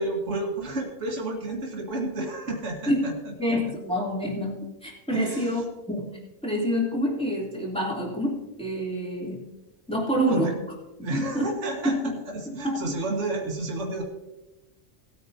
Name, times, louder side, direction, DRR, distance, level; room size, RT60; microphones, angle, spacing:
voice 1, 0.0-3.1 5.1-5.6 10.3-10.5 11.0-12.0 12.3-14.0, right 2 dB, 60° right, -1 dB, 2.0 m, -31 dB
voice 2, 3.4-5.6 5.9-6.1 6.4-9.4 9.9-10.5 11.1-11.5 11.8-12.1 12.6-12.9, equal, 5° left, -4 dB, 3.0 m, -27 dB
18.5 x 9.4 x 2.8 m, 1.0 s
omnidirectional pair, 1.4 m